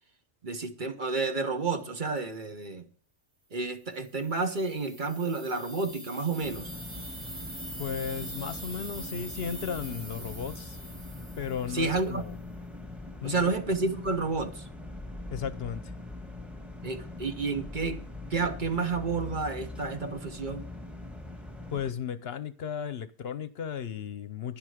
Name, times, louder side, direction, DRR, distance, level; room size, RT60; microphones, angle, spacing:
voice 1, 0.4-2.9 3.5-6.7 11.7-12.2 13.2-14.7 16.8-18.0 18.3-20.7, right 4 dB, 45° right, 1.4 m, -30 dB
sound 1, 4.1-12.1, right 1 dB, 70° right, 4.6 m, -43 dB
sound 2, 6.4-21.9, left 2 dB, ahead, 1.7 m, -42 dB
voice 2, 7.8-10.8 11.4-12.4 13.2-13.5 15.3-15.9 21.7-24.6, left 7 dB, 60° left, 0.9 m, -35 dB
12.0 x 10.5 x 5.0 m
omnidirectional pair, 1.2 m